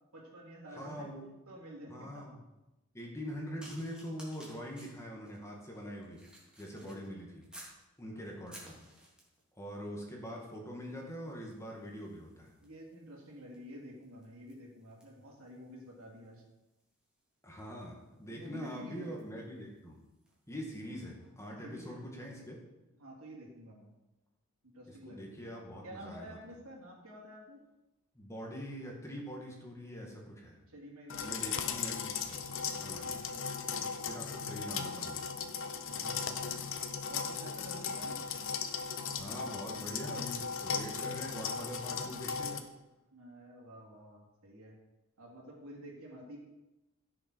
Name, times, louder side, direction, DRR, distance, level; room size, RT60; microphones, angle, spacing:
voice 1, 0.1-1.1 1.5-2.3 6.7-7.2 8.1-8.4 12.6-16.4 18.3-19.1 21.6-22.1 22.9-23.9 24.7-25.5 25.8-27.6 30.7-31.8 33.0-34.2 35.8-36.7 37.1-38.2 43.1-44.8 45.2-46.4, equal, 70° right, -2 dB, 3.4 m, -50 dB
voice 2, 0.7-1.3 1.9-2.4 2.9-6.2 6.6-7.4 8.0-8.8 9.6-12.5 17.4-20.0 20.5-22.6 25.0-26.4 28.2-30.6 31.2-32.4 32.8-33.1 34.1-35.3 39.2-42.6, equal, 15° left, -1 dB, 2.0 m, -43 dB
sound 1, 3.6-7.8 8.2-9.5 10.3-10.5 10.8-20.5 21.2-21.3, right 1 dB, 5° right, 3.0 m, -58 dB
sound 2, 31.1-42.6, left 6 dB, 65° left, 0.9 m, -37 dB
16.0 x 6.7 x 4.6 m, 0.99 s
head